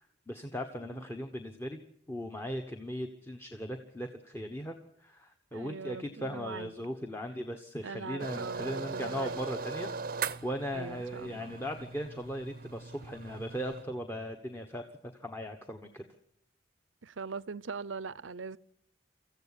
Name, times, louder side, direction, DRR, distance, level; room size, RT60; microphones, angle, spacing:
voice 1, 0.0-1.8 2.1-14.8 15.1-16.0, equal, 10° left, 1.2 m, -38 dB
voice 2, 5.5-6.7 7.8-9.4 10.7-11.5 17.0-18.6, right 4 dB, 90° right, 0.7 m, -41 dB
sound 1, 8.2-13.8, right 5 dB, 50° right, 0.7 m, -40 dB
25.0 x 15.0 x 8.3 m
head